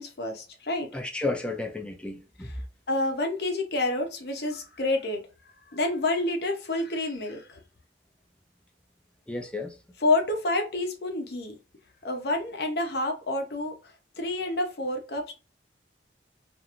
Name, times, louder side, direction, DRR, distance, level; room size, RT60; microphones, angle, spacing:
voice 1, 0.0-0.9 2.4-2.5 2.9-5.2 5.7-7.6 10.0-11.6 12.0-15.3, left 2 dB, 60° left, 0.7 m, -28 dB
voice 2, 0.9-2.5 9.3-9.8, left 2 dB, 5° left, 0.4 m, -32 dB
2.5 x 2.5 x 2.9 m
head